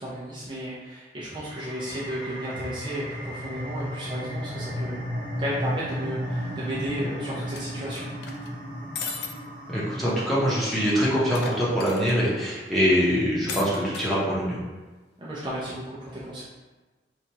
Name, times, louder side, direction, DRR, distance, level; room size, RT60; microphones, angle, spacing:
voice 1, 0.0-5.0 5.4-8.1 15.2-16.4, equal, 25° right, -8 dB, 0.5 m, -33 dB
sound 1, 1.3-12.4, equal, 30° left, 1.2 m, -35 dB
sound 2, 7.5-8.5 9.0-9.3 9.7-9.8 10.1-10.2 11.3-12.2 13.5-14.1, left 5 dB, 65° left, 0.4 m, -36 dB
voice 2, 9.7-14.6, equal, ahead, -9 dB, 0.9 m, -24 dB
4.5 x 2.5 x 2.8 m, 1.3 s
head